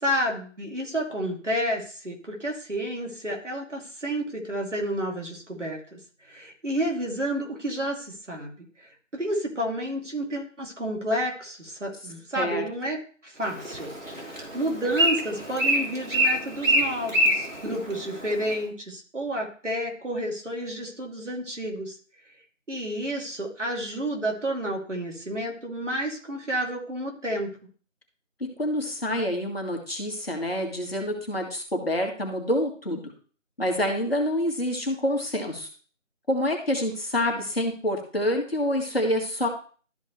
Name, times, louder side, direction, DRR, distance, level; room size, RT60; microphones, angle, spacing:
voice 1, 0.0-6.0 6.3-13.0 13.2-22.0 22.7-27.5 33.8-33.9, equal, 65° right, 0 dB, 2.8 m, -30 dB
Bird, 13.4-18.6, equal, 90° right, 3.1 m, -26 dB
voice 2, 28.4-33.1 33.6-35.7 36.3-39.5, left 1 dB, 50° left, 2 dB, 2.0 m, -27 dB
13.0 x 5.2 x 3.2 m, 0.41 s
figure-of-eight pair, 175°, 39 cm